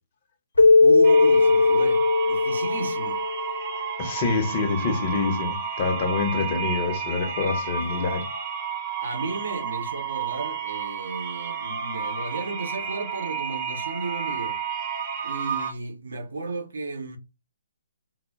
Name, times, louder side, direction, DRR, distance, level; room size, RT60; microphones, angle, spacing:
Keyboard (musical), 0.6-3.8, left 3 dB, 90° left, 0.7 m, -18 dB
voice 1, 0.8-3.2 7.8-8.2 9.0-14.6 15.2-17.2, right 3 dB, 70° right, 0.6 m, -34 dB
sound 1, 1.0-15.7, right 7 dB, 30° right, 0.6 m, -31 dB
voice 2, 4.0-8.2, left 4 dB, 40° left, 0.6 m, -26 dB
2.1 x 2.0 x 3.4 m
figure-of-eight pair, 140°, 0 cm